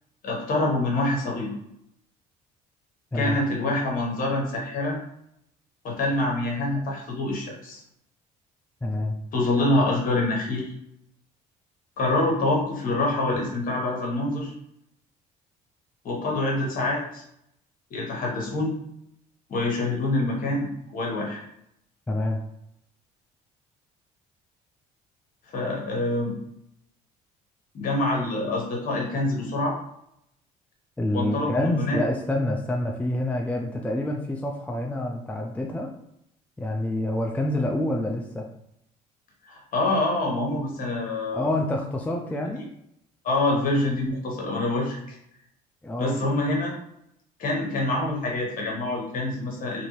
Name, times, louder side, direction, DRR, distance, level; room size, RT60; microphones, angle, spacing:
voice 1, 0.2-1.5 3.1-5.0 5.8-7.8 9.3-10.7 12.0-14.5 16.0-17.2 17.9-18.8 19.5-21.4 25.5-26.4 27.7-29.8 31.1-32.0 39.4-41.5 43.2-45.2 46.0-46.7 47.4-49.8, left 2 dB, 55° left, -1 dB, 1.1 m, -26 dB
voice 2, 8.8-9.1 22.1-22.4 31.0-35.9 36.6-38.4 41.3-42.6 45.8-46.2, left 1 dB, 10° left, 1 dB, 0.4 m, -27 dB
2.7 x 2.5 x 3.0 m, 0.77 s
supercardioid pair, 75°, 16 cm